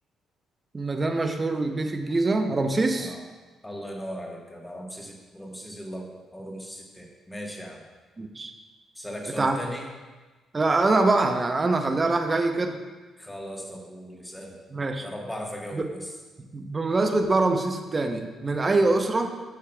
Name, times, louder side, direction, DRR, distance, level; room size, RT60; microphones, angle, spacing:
voice 1, 0.7-3.2 8.2-8.5 9.4-9.6 10.5-12.8 14.7-15.1 15.7-15.8 16.5-19.3, right 2 dB, 30° right, 5 dB, 0.7 m, -24 dB
voice 2, 3.6-7.8 8.9-9.9 13.2-14.6 15.0-16.1 18.7-19.0, equal, 10° left, 0 dB, 1.3 m, -38 dB
8.2 x 7.2 x 2.3 m, 1.3 s
cardioid pair, 90°, 0 cm